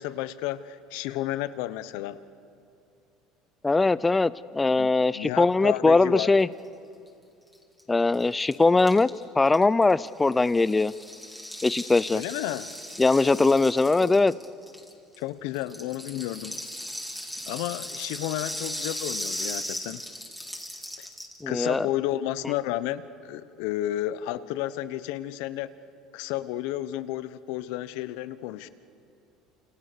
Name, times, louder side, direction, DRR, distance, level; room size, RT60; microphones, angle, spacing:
voice 1, 0.0-2.2 4.8-6.3 12.1-12.7 14.0-14.2 15.2-16.6 17.4-20.0 21.0-21.1 21.5-25.7 26.1-28.7, left 14 dB, 75° left, 14 dB, 1.0 m, -32 dB
voice 2, 3.6-6.5 7.9-9.1 9.3-10.9 11.6-12.2 13.0-14.3 21.4-21.9, left 3 dB, 15° left, 18 dB, 0.6 m, -21 dB
Rattle (instrument), 7.5-7.6 7.8-7.9 8.1-15.2 15.5-21.4, equal, ahead, 3.6 m, -37 dB
28.5 x 27.0 x 6.8 m, 2.5 s
supercardioid pair, 105°, 0 cm